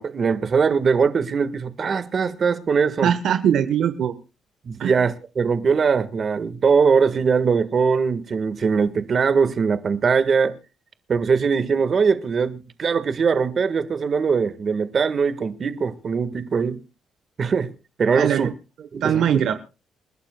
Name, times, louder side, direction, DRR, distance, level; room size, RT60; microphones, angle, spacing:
voice 1, 0.0-3.1 4.6-10.5 11.1-16.8 17.4-17.7 18.0-18.5 18.9-19.3, right 5 dB, 45° right, 1.6 m, -21 dB
voice 2, 3.0-4.1 4.8-5.0 18.1-18.5 19.0-19.5, right 9 dB, 75° right, 1.1 m, -21 dB
28.5 x 11.5 x 2.3 m
cardioid pair, 90°, 0 cm